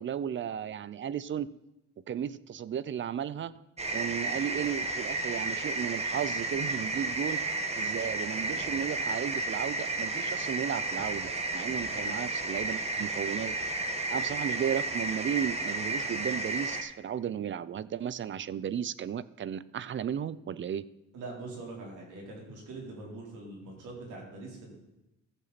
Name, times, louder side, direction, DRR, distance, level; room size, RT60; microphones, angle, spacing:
voice 1, 0.0-1.5 2.1-3.5 3.9-7.4 7.8-13.6 14.1-20.8, right 9 dB, 40° right, 18 dB, 0.5 m, -34 dB
sound 1, 3.8-16.8, right 2 dB, 20° right, 1.3 m, -32 dB
voice 2, 21.1-24.8, right 2 dB, 85° right, -1 dB, 3.7 m, -43 dB
14.5 x 7.3 x 4.1 m, 0.94 s
cardioid pair, 90°, 30 cm